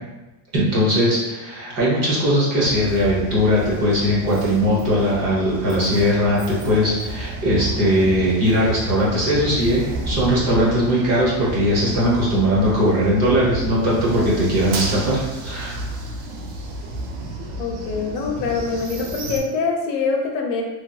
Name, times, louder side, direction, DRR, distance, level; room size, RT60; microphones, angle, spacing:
voice 1, 0.5-15.9, equal, 30° right, -6 dB, 0.8 m, -19 dB
sound 1, 2.6-19.4, right 2 dB, 75° right, 0.7 m, -31 dB
voice 2, 17.6-20.6, left 4 dB, 85° left, 2 dB, 0.8 m, -24 dB
3.1 x 2.6 x 2.3 m, 1.0 s
supercardioid pair, 170°, 49 cm